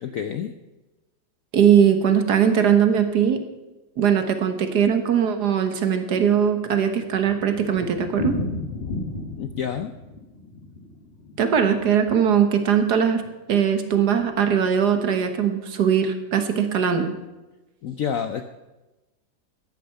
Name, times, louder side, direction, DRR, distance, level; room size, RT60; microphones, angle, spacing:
voice 1, 0.0-0.6 9.3-9.9 17.8-18.4, left 8 dB, 90° left, 8 dB, 0.7 m, -28 dB
voice 2, 1.5-3.4 4.0-8.4 11.4-13.2 13.5-17.1, right 8 dB, 60° right, 8 dB, 1.6 m, -20 dB
Thunder, 6.6-12.6 12.8-12.9 13.2-13.3 13.5-13.6 14.2-14.5, left 2 dB, 30° left, 1.8 m, -33 dB
14.0 x 10.0 x 5.7 m, 1.1 s
omnidirectional pair, 2.2 m